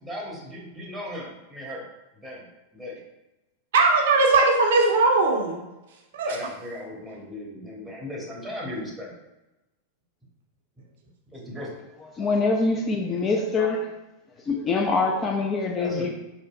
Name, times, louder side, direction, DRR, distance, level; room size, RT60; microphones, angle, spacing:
voice 1, 0.0-1.8 2.2-2.5 2.7-3.0 6.3-9.1 11.3-11.7 15.7-16.1, left 1 dB, 5° right, -3 dB, 0.9 m, -37 dB
voice 2, 3.7-5.6 6.1-6.4, right 3 dB, 60° right, 0 dB, 0.5 m, -19 dB
voice 3, 12.2-13.9 14.5-16.1, left 3 dB, 25° left, 1 dB, 0.4 m, -24 dB
4.2 x 2.7 x 2.3 m, 1.0 s
figure-of-eight pair, 90°, 0 cm